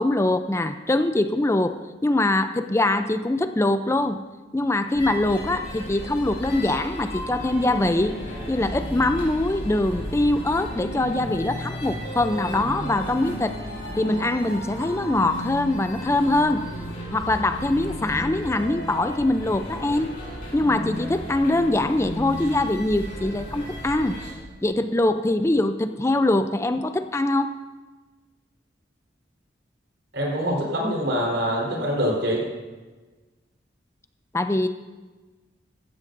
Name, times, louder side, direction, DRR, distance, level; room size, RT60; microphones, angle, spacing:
voice 1, 0.0-1.8 2.0-4.2 4.5-8.2 8.5-13.5 14.0-16.6 17.1-20.1 20.5-24.2 24.6-27.5 34.3-34.7, left 2 dB, 15° left, 9 dB, 0.4 m, -23 dB
sound 1, 4.9-24.3, equal, 55° left, 4.3 m, -34 dB
voice 2, 30.1-32.4, equal, 85° right, -2 dB, 4.0 m, -24 dB
15.0 x 13.5 x 2.6 m, 1.3 s
head